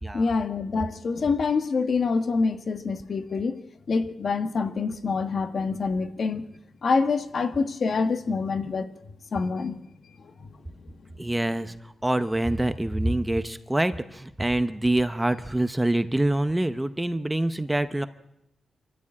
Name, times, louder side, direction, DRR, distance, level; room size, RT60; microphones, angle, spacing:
voice 1, 0.1-3.6 3.9-6.5 6.8-8.9 9.3-9.8 10.8-10.9, left 4 dB, 50° left, 1.4 m, -26 dB
voice 2, 11.2-11.7 12.0-18.1, right 1 dB, 10° right, 0.8 m, -25 dB
25.5 x 13.5 x 8.7 m
wide cardioid pair, 145°, 0 cm